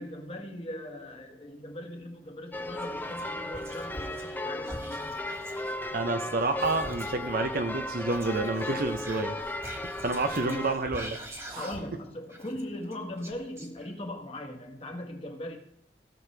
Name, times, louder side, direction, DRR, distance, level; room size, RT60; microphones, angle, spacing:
voice 1, 0.0-5.3 10.5-10.6 11.5-15.6, left 1 dB, 35° left, 3 dB, 1.7 m, -39 dB
sound 1, 2.5-10.7, left 1 dB, 10° left, 0.6 m, -36 dB
Whispering, 2.8-4.4 4.6-7.3 8.0-12.0 12.3-14.1, right 1 dB, 15° right, 1.6 m, -44 dB
voice 2, 5.9-9.5 10.0-11.2 11.5-11.6, right 3 dB, 55° right, 7 dB, 0.8 m, -29 dB
17.0 x 6.5 x 3.4 m, 0.74 s
head